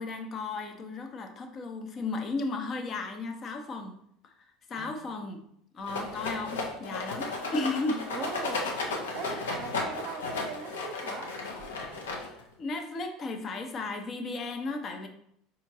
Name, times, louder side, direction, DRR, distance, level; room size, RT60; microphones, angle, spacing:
voice 1, 0.0-3.9 4.2-4.3 4.7-5.4 5.7-8.1 9.3-9.4 12.4-15.1, left 3 dB, 40° left, 5 dB, 0.6 m, -34 dB
Rattle, 5.9-12.5, left 3 dB, 85° left, 0.6 m, -34 dB
voice 2, 8.1-8.6 9.1-11.3, right 7 dB, 55° right, 7 dB, 0.5 m, -40 dB
4.4 x 2.8 x 2.6 m, 0.70 s
hypercardioid pair, 80°, 0 cm